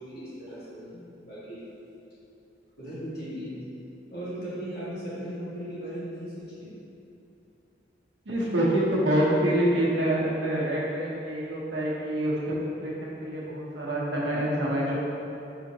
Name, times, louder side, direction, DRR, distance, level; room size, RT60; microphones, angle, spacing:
voice 1, 0.0-1.6 2.8-3.6 4.1-6.7, equal, 55° left, -10 dB, 1.5 m, -37 dB
voice 2, 8.2-15.0, right 1 dB, 90° right, -5 dB, 0.9 m, -26 dB
4.9 x 3.7 x 2.8 m, 2.8 s
head